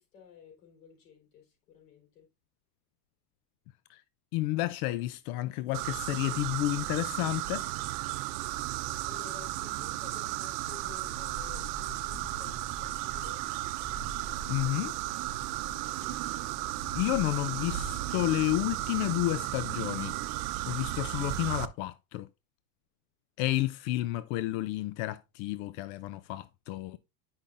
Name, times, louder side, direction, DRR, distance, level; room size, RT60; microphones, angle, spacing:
voice 1, 0.0-2.3 9.0-13.5 15.5-16.5 20.6-20.8, left 8 dB, 85° left, 4.3 m, -54 dB
voice 2, 4.3-7.7 14.5-14.9 16.9-20.2 20.7-22.3 23.4-27.0, left 17 dB, 60° left, 0.5 m, -31 dB
sound 1, 5.7-21.7, right 16 dB, 70° right, 0.7 m, -35 dB
sound 2, 11.0-17.9, right 2 dB, 20° right, 0.6 m, -45 dB
10.0 x 5.6 x 2.5 m
supercardioid pair, 140°, 47 cm